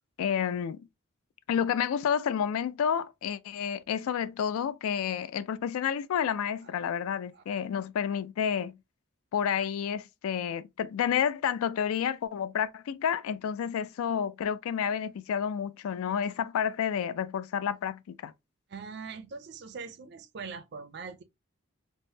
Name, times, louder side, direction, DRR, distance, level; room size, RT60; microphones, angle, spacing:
voice 1, 0.2-0.9 1.5-8.7 9.3-18.3, left 8 dB, 85° left, 0.3 m, -30 dB
voice 2, 6.6-7.0 7.3-7.4 18.7-21.2, right 5 dB, 50° right, 0.4 m, -42 dB
3.4 x 2.0 x 2.6 m
head